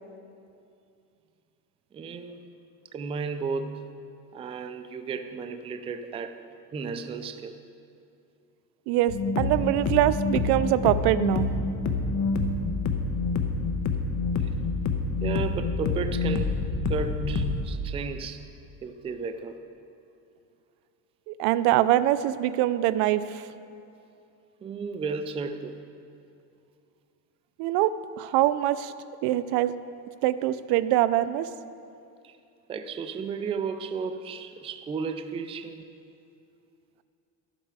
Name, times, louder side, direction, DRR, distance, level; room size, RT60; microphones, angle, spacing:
voice 1, 1.9-2.4 2.9-3.8 4.3-6.4 6.7-7.6 9.2-9.4 14.4-14.5 15.2-16.6 16.9-18.5 18.8-19.6 24.6-25.8 32.2-32.4 32.7-35.8, right 5 dB, 15° right, 9 dB, 0.3 m, -34 dB
voice 2, 8.9-11.5 21.3-23.4 27.6-28.9 29.2-29.7 30.2-31.5, right 13 dB, 75° right, 15 dB, 0.5 m, -24 dB
sound 1, 9.1-17.7, left 3 dB, 45° left, 0.9 m, -27 dB
11.5 x 7.7 x 4.7 m, 2.5 s
cardioid pair, 125°, 39 cm